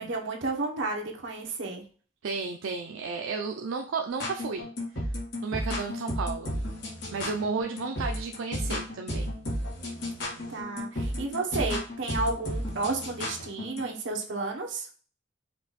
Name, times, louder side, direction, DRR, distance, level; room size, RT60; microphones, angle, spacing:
voice 1, 0.0-1.8 10.5-14.9, right 3 dB, 70° right, 1 dB, 1.1 m, -32 dB
voice 2, 2.2-4.7 4.9-5.1 5.4-6.6 7.1-9.3, right 4 dB, 85° right, 3 dB, 0.4 m, -33 dB
sound 1, 4.1-13.9, equal, 60° left, 1.4 m, -33 dB
5.2 x 2.5 x 4.1 m, 0.41 s
head